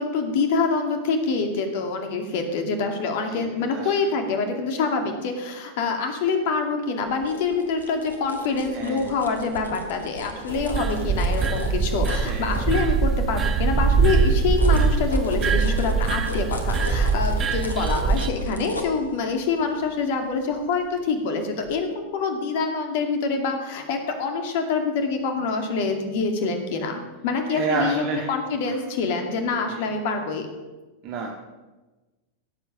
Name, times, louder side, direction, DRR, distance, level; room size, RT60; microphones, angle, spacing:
voice 1, 0.0-30.5, left 4 dB, 50° left, 5 dB, 2.3 m, -26 dB
voice 2, 3.3-3.9 8.7-9.2 12.3-12.6 27.5-28.3 28.7-28.8 29.7-29.8 31.0-31.3, right 5 dB, 40° right, 0 dB, 1.8 m, -30 dB
sound 1, 7.0-13.3 13.7-21.3 21.6-21.8, left 3 dB, 75° left, 1.7 m, -36 dB
sound 2, 10.5-18.3, right 5 dB, 25° right, 1.2 m, -22 dB
17.0 x 8.2 x 6.2 m, 1.2 s
figure-of-eight pair, 90°, 0 cm